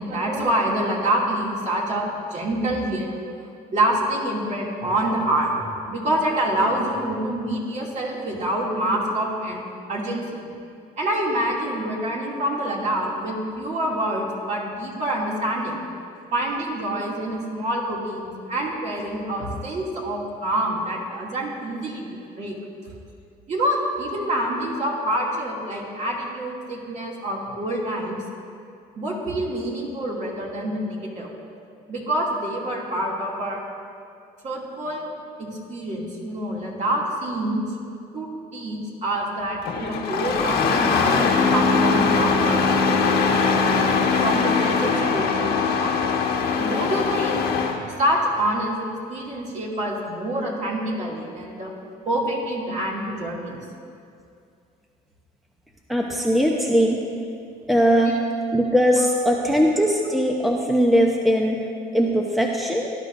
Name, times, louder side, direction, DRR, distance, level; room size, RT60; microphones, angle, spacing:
voice 1, 0.0-3.1 3.7-5.6 5.9-9.6 9.9-10.4 11.0-15.8 16.3-22.1 22.4-22.6 23.5-28.2 29.0-31.3 31.9-33.6 34.4-35.0 35.4-37.6 38.1-43.2 44.2-46.2 46.6-47.5 47.9-48.8 49.1-51.7 52.0-53.6 58.0-58.1, right 1 dB, 45° right, -3 dB, 2.7 m, -26 dB
Engine starting, 39.6-47.8, left 5 dB, 70° left, 1.4 m, -21 dB
voice 2, 55.9-57.0 57.7-58.2 58.5-61.7 61.9-62.9, equal, ahead, 0 dB, 0.8 m, -20 dB
17.5 x 11.5 x 2.7 m, 2.4 s
cardioid pair, 110°, 17 cm